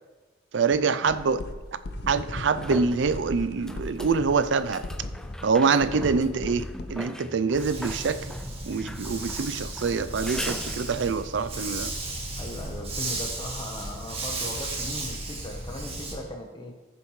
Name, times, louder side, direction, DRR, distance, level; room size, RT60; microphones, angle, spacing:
voice 1, 0.5-1.4 2.0-4.8 5.4-8.3 8.7-11.9, right 5 dB, 75° right, 0.4 m, -25 dB
sound 1, 0.7-0.8 2.1-11.2 14.6-14.7, equal, 5° left, 0.4 m, -40 dB
sound 2, 1.1-6.9, left 2 dB, 55° left, 0.6 m, -38 dB
Dog, 7.5-16.1, right 2 dB, 30° right, 1.6 m, -34 dB
voice 2, 12.4-16.7, left 1 dB, 25° left, 1.0 m, -38 dB
14.5 x 6.9 x 3.2 m
head